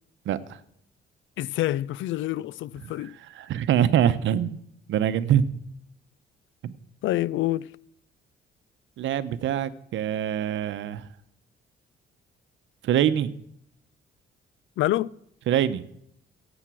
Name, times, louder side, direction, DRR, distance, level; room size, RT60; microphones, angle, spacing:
voice 1, 1.4-3.2 7.0-7.7 14.8-15.1, left 15 dB, 75° left, 0.5 m, -27 dB
voice 2, 3.3-4.6 4.9-5.5 6.6-6.8 9.0-11.0 12.8-13.3 15.5-15.8, right 10 dB, 75° right, 0.9 m, -24 dB
16.0 x 8.1 x 6.2 m
cardioid pair, 90°, 20 cm